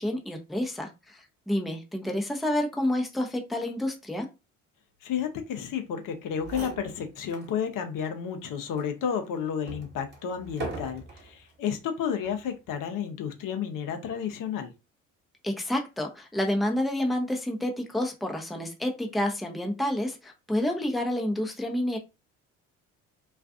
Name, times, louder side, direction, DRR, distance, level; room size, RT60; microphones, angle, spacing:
voice 1, 0.0-4.3 15.4-22.0, left 1 dB, ahead, 0.6 m, -29 dB
voice 2, 5.0-14.7, left 7 dB, 55° left, 0.7 m, -31 dB
sound 1, 6.1-6.2 6.4-7.5 8.0-8.1 8.8-11.3 12.1-12.5, right 3 dB, 30° right, 1.3 m, -40 dB
2.4 x 2.4 x 2.4 m
hypercardioid pair, 60°, 38 cm